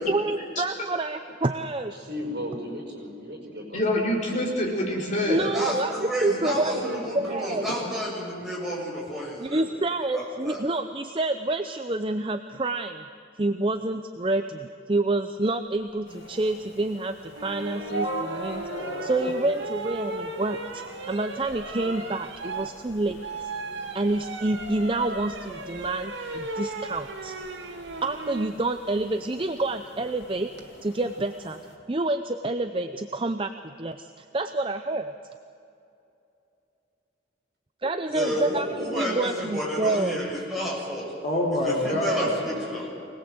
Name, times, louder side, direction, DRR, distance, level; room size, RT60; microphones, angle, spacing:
voice 1, 0.1-1.9 5.2-6.8 7.1-7.7 9.4-13.0 13.4-18.6 19.0-23.2 23.9-27.4 28.0-30.5 30.8-31.6 31.9-33.5 33.8-35.1 37.8-40.2, right 2 dB, 30° right, 8 dB, 0.6 m, -28 dB
voice 2, 1.9-4.4 6.3-7.7 38.2-39.7 42.3-42.9, equal, 60° right, 2 dB, 5.1 m, -37 dB
voice 3, 3.7-5.5 41.2-42.3, left 1 dB, 40° left, -2 dB, 4.7 m, -25 dB
voice 4, 5.3-9.6 10.1-10.6 38.1-41.1 41.6-42.9, equal, ahead, -6 dB, 7.4 m, -31 dB
sound 1, 16.1-31.8, equal, 75° left, 3.8 m, -41 dB
sound 2, 17.3-28.5 30.2-30.6, right 3 dB, 80° right, 1.8 m, -36 dB
25.0 x 19.0 x 7.9 m, 2.8 s
head